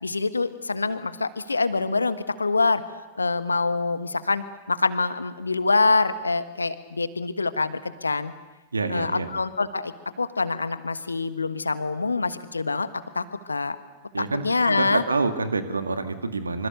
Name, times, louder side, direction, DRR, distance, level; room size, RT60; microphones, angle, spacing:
voice 1, 0.0-2.8 3.1-8.3 8.9-12.9 13.1-13.8 14.2-15.0, left 3 dB, 80° left, 12 dB, 1.4 m, -25 dB
voice 2, 8.7-9.3 14.1-16.7, right 3 dB, 80° right, 8 dB, 2.0 m, -27 dB
26.0 x 26.0 x 6.7 m, 1.1 s
figure-of-eight pair, 95°, 0 cm